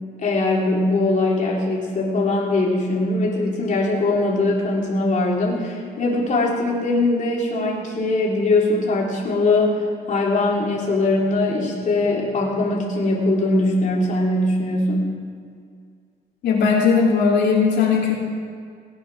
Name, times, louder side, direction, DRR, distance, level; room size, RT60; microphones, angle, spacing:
voice 1, 0.2-15.2, left 2 dB, 45° left, -4 dB, 3.6 m, -21 dB
voice 2, 16.4-18.1, left 5 dB, 90° left, -4 dB, 3.1 m, -18 dB
18.5 x 9.1 x 6.3 m, 2.2 s
cardioid pair, 110°, 18 cm